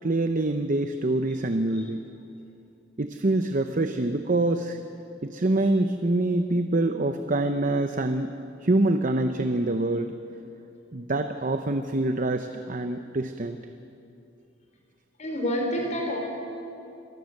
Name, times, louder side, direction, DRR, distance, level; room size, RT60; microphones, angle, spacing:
voice 1, 0.0-2.0 3.0-4.8 5.2-10.1 10.9-13.6, right 2 dB, 45° right, 7 dB, 0.8 m, -25 dB
voice 2, 15.2-16.2, equal, 40° left, 1 dB, 4.3 m, -28 dB
27.0 x 17.5 x 6.6 m, 2.7 s
head